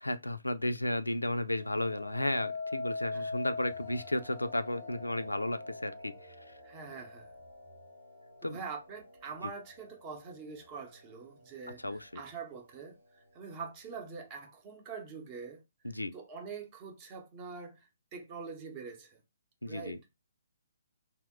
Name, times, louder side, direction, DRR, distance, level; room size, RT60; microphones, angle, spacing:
voice 1, 0.0-6.1 6.5-6.6 8.4-8.6 11.8-12.2 15.8-16.1 19.6-20.0, left 1 dB, 90° left, 0.3 m, -33 dB
sound 1, 1.5-10.7 11.2-11.7, left 3 dB, 65° right, 0.9 m, -43 dB
voice 2, 6.6-7.3 8.4-15.6 16.1-19.2 19.7-20.0, right 5 dB, 30° right, 0.7 m, -44 dB
2.8 x 2.0 x 3.5 m
figure-of-eight pair, 135°, 0 cm